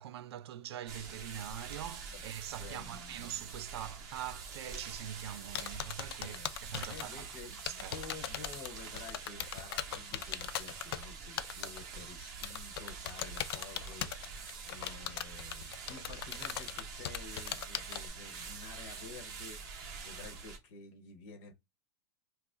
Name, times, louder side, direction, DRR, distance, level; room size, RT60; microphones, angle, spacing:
voice 1, 0.0-7.9, right 11 dB, 80° right, 0.4 m, -44 dB
sound 1, 0.9-20.6, right 5 dB, 25° right, 0.7 m, -46 dB
voice 2, 2.6-3.2 6.2-14.4 14.7-21.5, left 4 dB, 35° left, 0.6 m, -51 dB
sound 2, 5.5-7.0 7.6-11.0 11.4-11.8 12.4-18.1, left 10 dB, 70° left, 0.4 m, -39 dB
2.8 x 2.3 x 3.7 m
supercardioid pair, 180°, 13 cm